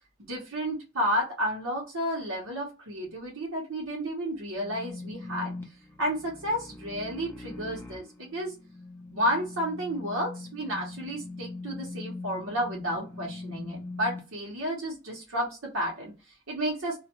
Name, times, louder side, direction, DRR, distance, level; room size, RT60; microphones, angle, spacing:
voice 1, 0.3-5.5 6.0-8.5 9.1-17.0, equal, 85° right, -3 dB, 1.0 m, -31 dB
sound 1, 4.6-14.2, left 2 dB, 10° left, 0.6 m, -41 dB
2.3 x 2.2 x 2.9 m, 0.30 s
head